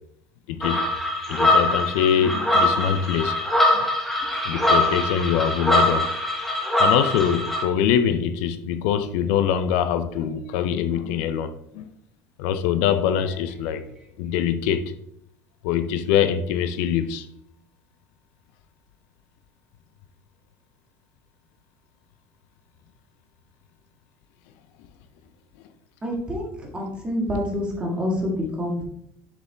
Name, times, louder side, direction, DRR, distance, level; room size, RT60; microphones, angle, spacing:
voice 1, 0.5-0.9 1.3-3.4 3.7-3.8 4.5-6.0 6.8-11.5 11.7-11.9 12.4-13.8 14.2-14.8 15.6-17.3, left 9 dB, 80° left, 11 dB, 0.5 m, -23 dB
sound 1, 0.6-7.6, left 1 dB, 5° left, 0.9 m, -22 dB
voice 2, 26.0-28.8, left 1 dB, 15° right, -1 dB, 1.7 m, -27 dB
6.7 x 4.8 x 3.4 m, 0.74 s
cardioid pair, 150°, 6 cm